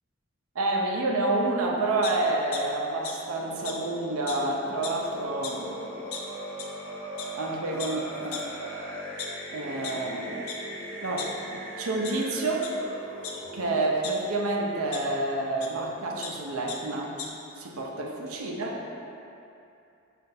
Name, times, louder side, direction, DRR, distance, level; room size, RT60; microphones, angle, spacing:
voice 1, 0.5-5.9 7.4-8.4 9.5-10.5 11.0-11.4 11.8-12.7 13.5-17.1 17.6-18.9, right 2 dB, 75° right, -1 dB, 0.6 m, -28 dB
sound 1, 2.0-2.6 3.0-3.1 3.7-3.8 4.3-4.4 4.7-5.0 5.4-5.5 6.1-6.2 6.6-6.7 7.2-7.3 7.8-7.9 8.3-8.4 9.0-9.9 10.5-10.6 10.9-11.6 12.0-12.1 12.6-12.7 13.2-14.1 14.9-15.0 15.6-15.7 16.0-16.3 16.7-16.8 17.0-17.3, left 8 dB, 80° left, 0.5 m, -37 dB
sound 2, 3.3-13.9, equal, 5° left, 0.9 m, -39 dB
5.5 x 2.5 x 3.9 m, 2.7 s
head